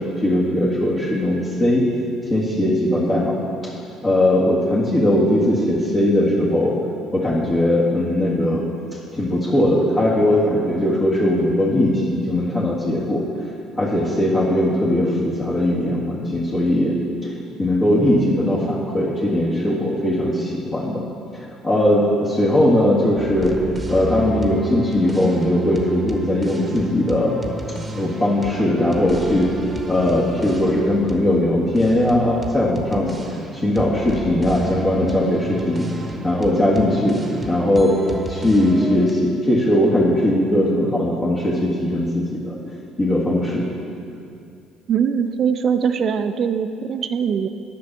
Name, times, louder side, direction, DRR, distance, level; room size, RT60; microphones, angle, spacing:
voice 1, 0.0-1.9 2.3-3.4 3.6-3.7 4.0-6.7 7.1-8.6 9.1-13.3 13.8-16.9 17.2-17.3 17.6-21.0 21.3-23.5 23.9-27.4 27.9-33.1 33.5-35.9 36.2-37.2 37.5-38.0 38.3-42.5 43.0-43.6, left 1 dB, 30° left, -7 dB, 1.8 m, -19 dB
sound 1, 23.2-39.1, right 2 dB, 25° right, 1.1 m, -32 dB
voice 2, 44.9-47.5, right 7 dB, 55° right, 10 dB, 0.5 m, -21 dB
8.3 x 6.0 x 6.8 m, 2.5 s
hypercardioid pair, 60°, 0 cm